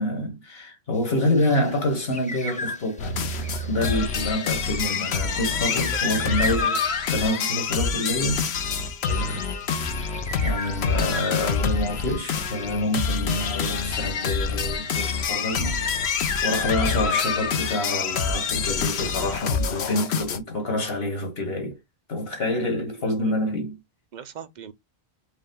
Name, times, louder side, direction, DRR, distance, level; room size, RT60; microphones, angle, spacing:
voice 1, 0.0-3.2 3.7-8.5 9.0-9.4 9.9-16.2 16.4-21.8 22.1-23.8, left 1 dB, 65° left, 1.8 m, -27 dB
sound 1, 0.9-13.2, left 1 dB, 10° left, 0.6 m, -39 dB
sound 2, 3.0-20.4, left 5 dB, 80° left, 1.0 m, -26 dB
voice 2, 5.7-6.5 23.2-23.5 24.1-24.7, right 8 dB, 55° right, 0.6 m, -41 dB
5.0 x 2.3 x 3.6 m
omnidirectional pair, 1.1 m